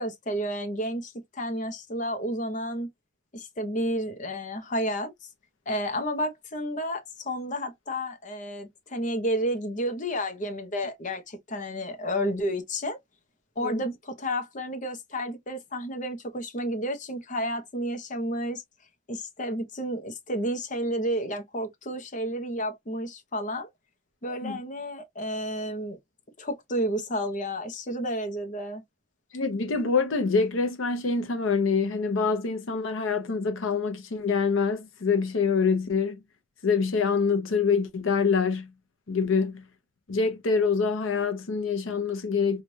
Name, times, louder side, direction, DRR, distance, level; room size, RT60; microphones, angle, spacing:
voice 1, 0.0-2.9 3.3-5.1 5.7-13.0 13.6-18.6 19.1-23.7 24.2-26.0 26.4-28.8, equal, 40° left, 0.8 m, -31 dB
voice 2, 29.3-36.2 36.6-38.7 39.1-39.6 40.1-42.6, left 5 dB, 80° left, 0.7 m, -25 dB
3.2 x 2.4 x 2.6 m
head